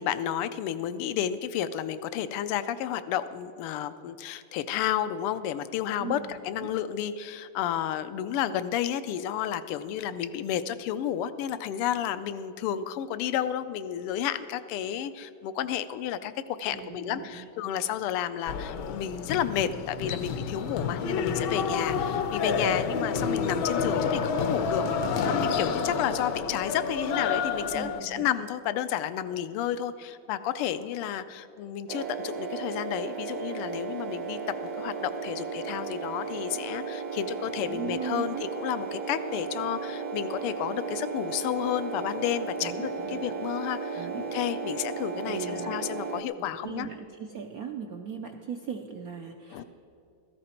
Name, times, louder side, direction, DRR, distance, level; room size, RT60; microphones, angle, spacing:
voice 1, 0.0-24.9 25.2-46.9 49.5-49.6, left 10 dB, 85° left, 13 dB, 1.6 m, -31 dB
voice 2, 6.0-6.7 16.7-17.5 27.7-28.3 37.7-38.5 42.6-43.3 43.9-44.2 45.3-45.7 46.4-49.6, right 6 dB, 80° right, 4 dB, 0.8 m, -38 dB
sound 1, 18.5-28.0, left 5 dB, 65° left, 1.2 m, -29 dB
sound 2, 31.9-46.2, right 5 dB, 65° right, 1.0 m, -35 dB
16.0 x 14.0 x 4.3 m, 2.8 s
omnidirectional pair, 2.4 m